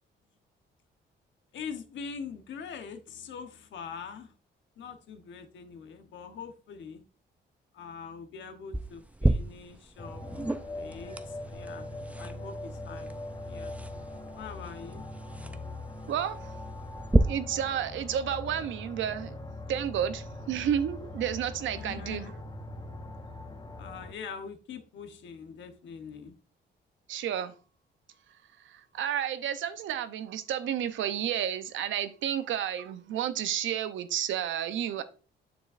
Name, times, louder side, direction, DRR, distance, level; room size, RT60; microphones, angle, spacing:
voice 1, 1.5-4.3 4.8-7.0 7.7-11.9 12.2-13.1 13.4-13.7 14.3-15.0 21.8-22.3 23.8-26.4, left 6 dB, 70° left, 1.1 m, -43 dB
sound 1, 8.7-17.2, right 1 dB, 5° right, 0.5 m, -33 dB
sound 2, 10.0-24.1, left 2 dB, 20° left, 0.9 m, -41 dB
voice 2, 16.1-16.5 17.2-19.3 19.7-22.3 27.1-27.5 28.6-35.0, right 10 dB, 75° right, 0.7 m, -31 dB
6.9 x 6.7 x 2.5 m
cardioid pair, 90°, 20 cm